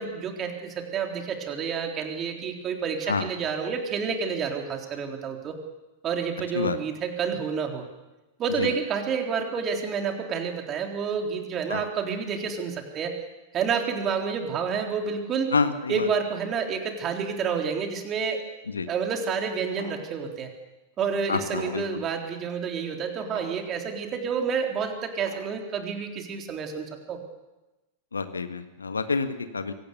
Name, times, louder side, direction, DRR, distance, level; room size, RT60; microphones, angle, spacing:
voice 1, 0.0-5.6 6.0-7.9 8.4-13.1 13.5-15.5 15.9-18.4 18.9-20.5 21.0-27.2, right 6 dB, 30° right, 3 dB, 3.7 m, -29 dB
voice 2, 15.5-16.1 18.7-18.9 21.3-21.8 28.1-29.7, left 4 dB, 80° left, 9 dB, 1.6 m, -28 dB
sound 1, 19.8-20.1 21.6-22.0 23.3-23.7 25.3-25.7, right 2 dB, 70° right, 7.0 m, -42 dB
24.0 x 18.0 x 6.9 m, 1.0 s
figure-of-eight pair, 95°, 0 cm